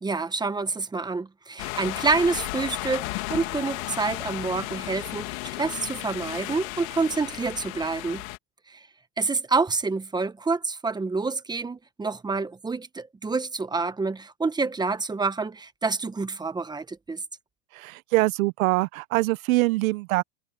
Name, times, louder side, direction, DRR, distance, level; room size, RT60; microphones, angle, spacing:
voice 1, 0.0-8.2 8.7-8.9 9.2-17.2, right 4 dB, 10° right, 1.2 m, -28 dB
sound 1, 1.6-8.4, left 23 dB, 60° left, 2.2 m, -34 dB
voice 2, 17.7-20.2, right 20 dB, 60° right, 0.7 m, -24 dB
supercardioid pair, 140°, 47 cm